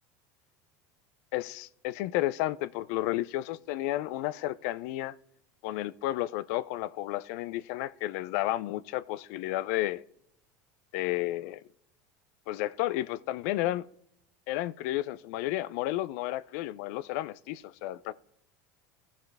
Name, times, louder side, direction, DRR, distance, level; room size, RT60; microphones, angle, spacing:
voice 1, 1.3-5.1 5.6-10.0 10.9-11.6 12.5-13.8 14.5-18.1, left 15 dB, 70° left, 0.5 m, -32 dB
16.0 x 7.3 x 3.4 m
supercardioid pair, 120°, 8 cm